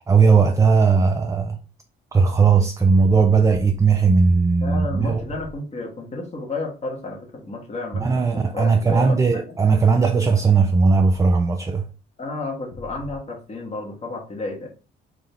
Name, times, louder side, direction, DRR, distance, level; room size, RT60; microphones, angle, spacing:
voice 1, 0.0-1.6 2.1-5.2 7.9-11.9, right 5 dB, 15° right, 0.3 m, -18 dB
sound 1, 2.3-5.6 10.9-11.3 12.7-13.2, left 1 dB, 50° left, 0.9 m, -39 dB
voice 2, 4.6-9.6 12.2-14.7, left 3 dB, 35° left, 1.3 m, -32 dB
3.7 x 2.7 x 3.4 m
cardioid pair, 90°, 20 cm